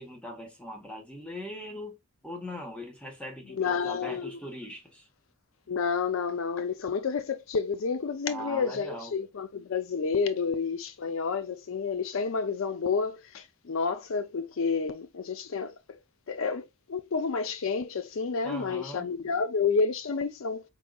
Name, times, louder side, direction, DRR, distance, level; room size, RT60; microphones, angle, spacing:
voice 1, 0.0-1.9 2.2-5.1 8.3-9.1 18.4-19.1, equal, 5° left, 1.3 m, -40 dB
voice 2, 3.5-4.4 5.7-15.7 16.3-20.6, left 5 dB, 65° left, 0.5 m, -30 dB
4.8 x 3.8 x 2.3 m
head